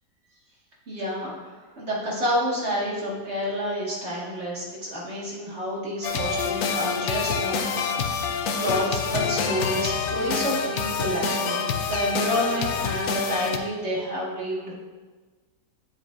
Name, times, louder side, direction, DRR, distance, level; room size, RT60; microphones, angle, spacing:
voice 1, 0.9-7.6 7.9-14.8, equal, 40° right, -5 dB, 1.9 m, -29 dB
sound 1, 6.0-13.6, left 5 dB, 70° left, 1.1 m, -27 dB
9.7 x 7.6 x 2.5 m, 1.3 s
omnidirectional pair, 1.8 m